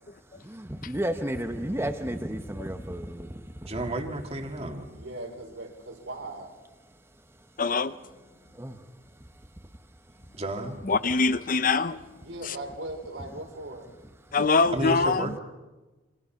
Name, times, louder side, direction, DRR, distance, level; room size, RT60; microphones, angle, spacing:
voice 1, 0.4-3.4 8.5-8.8, right 1 dB, 15° right, 1.0 m, -32 dB
voice 2, 3.6-4.8 10.4-10.8 14.7-15.4, right 1 dB, 30° right, 2.2 m, -31 dB
voice 3, 4.9-6.6 12.2-14.0, right 2 dB, 85° right, 5.1 m, -39 dB
voice 4, 7.6-7.9 10.9-12.0 14.3-15.2, left 4 dB, 45° left, 0.7 m, -23 dB
28.0 x 25.5 x 5.9 m
head